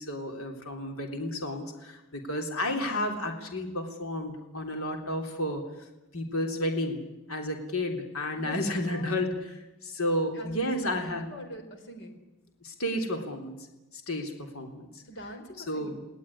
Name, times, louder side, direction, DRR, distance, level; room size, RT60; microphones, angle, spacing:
voice 1, 0.0-5.9 6.1-7.0 7.3-11.2 12.0-12.1 12.6-13.7 13.9-15.0 15.6-16.0, left 1 dB, 70° left, 4 dB, 3.4 m, -32 dB
voice 2, 8.9-9.2 10.3-12.2 15.0-16.1, equal, 55° left, 6 dB, 4.5 m, -44 dB
29.0 x 19.0 x 9.9 m, 1.0 s
head